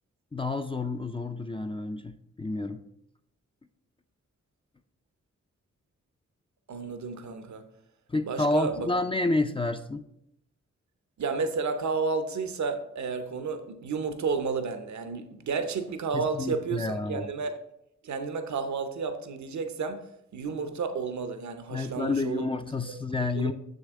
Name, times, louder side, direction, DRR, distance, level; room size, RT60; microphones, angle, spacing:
voice 1, 0.3-2.8 8.1-10.1 16.1-17.3 21.7-23.5, left 2 dB, 20° left, 0.4 m, -29 dB
voice 2, 6.7-7.7 8.2-8.9 11.2-17.6 18.0-22.4 22.9-23.0 23.3-23.5, right 5 dB, 75° right, 0.8 m, -31 dB
6.5 x 6.5 x 3.6 m
cardioid pair, 55°, 29 cm